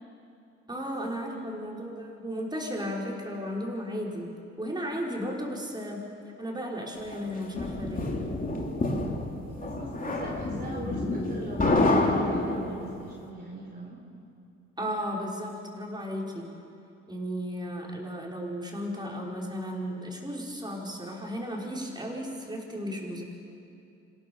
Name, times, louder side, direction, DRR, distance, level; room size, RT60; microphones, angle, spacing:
voice 1, 0.7-4.3 4.6-6.1 6.4-8.0 14.8-16.5 17.1-23.2, equal, 15° right, -2 dB, 5.1 m, -34 dB
voice 2, 1.2-1.6 9.3-14.0, right 1 dB, 30° right, -2 dB, 4.0 m, -41 dB
sound 1, 7.1-13.0, left 2 dB, 30° left, 3.2 m, -28 dB
27.0 x 16.0 x 7.1 m, 2.6 s
cardioid pair, 90°, 30 cm